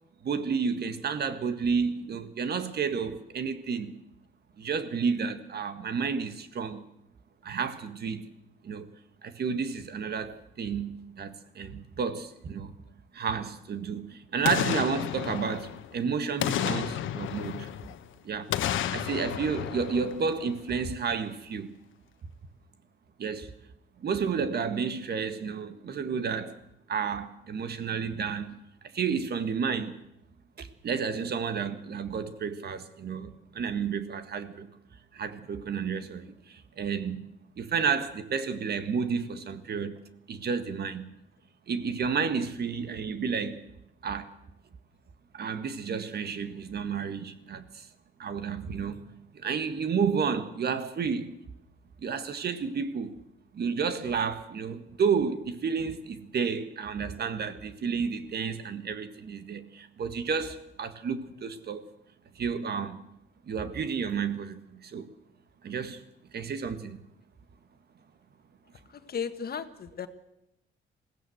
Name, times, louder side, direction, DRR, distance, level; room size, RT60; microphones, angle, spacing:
voice 1, 0.2-4.0 4.6-6.8 7.4-8.3 8.6-8.9 9.2-12.7 13.1-17.7 18.2-21.8 23.2-23.5 24.0-26.6 26.9-28.6 28.8-30.0 30.6-34.7 35.1-37.3 37.6-40.0 40.3-41.1 41.7-43.6 44.0-44.3 45.3-47.9 48.2-49.0 49.3-51.4 52.0-53.2 53.5-61.8 62.3-63.0 63.5-65.1 65.6-66.0 66.3-67.0, right 6 dB, 55° right, 1.7 m, -31 dB
Boom, 14.4-16.0 16.4-18.0 18.5-20.7 21.1-21.2, left 11 dB, 80° left, 1.2 m, -32 dB
voice 2, 69.1-70.1, left 7 dB, 50° left, 1.5 m, -34 dB
21.0 x 16.0 x 7.9 m
cardioid pair, 90°, 20 cm